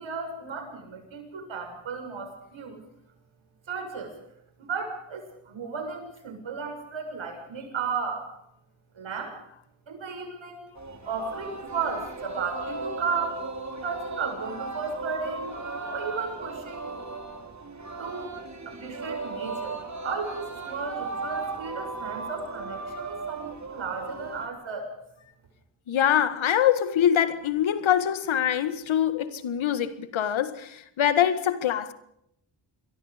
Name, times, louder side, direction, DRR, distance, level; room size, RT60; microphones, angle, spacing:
voice 1, 0.0-2.8 3.7-4.2 4.6-8.3 9.0-9.4 9.9-10.7 11.0-13.5 13.8-15.6 15.9-16.9 18.0-18.3 18.7-24.9, right 5 dB, 80° right, 7.1 m, -34 dB
Singing, 10.8-24.5, right 3 dB, 35° right, 4.4 m, -36 dB
voice 2, 25.9-31.9, left 10 dB, 85° left, 1.8 m, -24 dB
27.5 x 23.0 x 5.2 m
cardioid pair, 60°, 46 cm